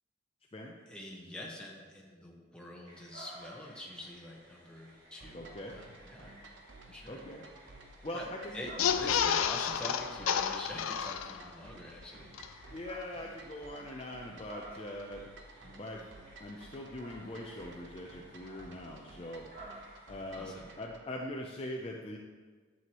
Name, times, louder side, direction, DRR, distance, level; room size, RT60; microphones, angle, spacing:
voice 1, 0.9-6.4 6.9-7.2 8.1-8.3 8.5-12.3 20.3-20.7, left 1 dB, 5° left, -2 dB, 1.1 m, -46 dB
sound 1, 2.8-20.8, right 1 dB, 45° right, 2.7 m, -55 dB
sound 2, 5.2-21.1, right 2 dB, 60° right, 0.9 m, -54 dB
voice 2, 5.3-5.8 7.1-7.5 8.0-8.7 12.6-15.3 15.6-16.1 16.4-19.8 20.1-22.2, left 1 dB, 30° left, 0 dB, 0.5 m, -42 dB
sound 3, 8.7-11.6 12.0-12.1 12.3-12.5, left 8 dB, 85° left, 0.4 m, -30 dB
11.0 x 7.7 x 3.0 m, 1.4 s
head